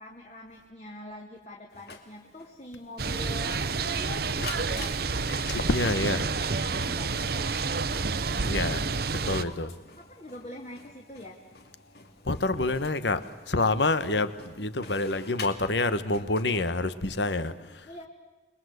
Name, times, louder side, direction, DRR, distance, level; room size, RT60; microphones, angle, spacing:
voice 1, 0.0-4.9 5.6-7.5 8.4-9.6 10.0-11.3 14.3-14.7 17.5-18.1, left 1 dB, 35° left, 2.5 m, -44 dB
Printer, 1.7-17.1, left 4 dB, 60° left, 2.6 m, -47 dB
sound 1, 3.0-9.4, right 4 dB, 60° right, 0.9 m, -29 dB
voice 2, 5.5-6.2 8.5-8.8 9.3-9.7 12.2-17.9, left 2 dB, 80° left, 1.3 m, -27 dB
28.0 x 22.0 x 8.1 m
head